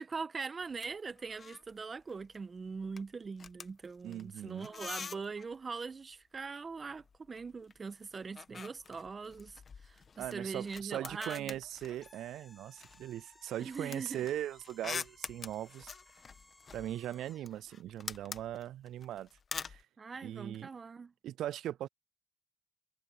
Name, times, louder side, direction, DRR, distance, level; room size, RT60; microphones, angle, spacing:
voice 1, 0.0-11.6 13.6-14.2 20.0-21.1, right 4 dB, 40° right, 1.3 m, -42 dB
sound 1, 0.6-1.7 2.0-2.4 2.7-5.6 6.7-7.8 8.0-12.3 12.8-19.8, left 5 dB, 50° left, 1.4 m, -46 dB
voice 2, 4.0-4.7 10.2-15.9 16.7-19.3 19.6-19.8 20.2-20.7 21.2-21.9, right 12 dB, 75° right, 0.3 m, -40 dB
sound 2, 12.0-17.6, left 2 dB, 20° left, 3.1 m, -61 dB
supercardioid pair, 55°, 0 cm